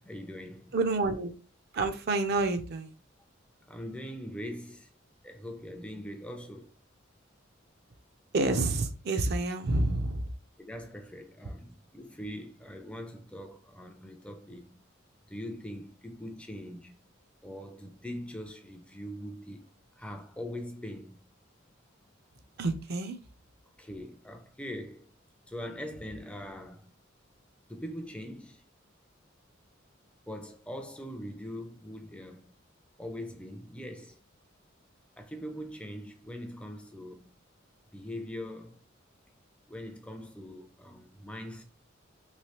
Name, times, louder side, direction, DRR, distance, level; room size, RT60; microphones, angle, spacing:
voice 1, 0.0-0.7 3.6-4.9 5.2-6.7 10.6-14.8 15.3-17.0 17.4-19.6 20.0-21.2 23.8-25.1 25.5-26.9 27.7-28.6 30.3-32.5 33.0-34.2 35.2-37.3 37.9-38.8 39.7-41.6, equal, 5° left, 0.4 m, -42 dB
voice 2, 0.7-1.3 1.7-2.9 8.3-10.3 22.6-23.2, right 2 dB, 55° right, 0.5 m, -28 dB
3.2 x 3.0 x 2.9 m
head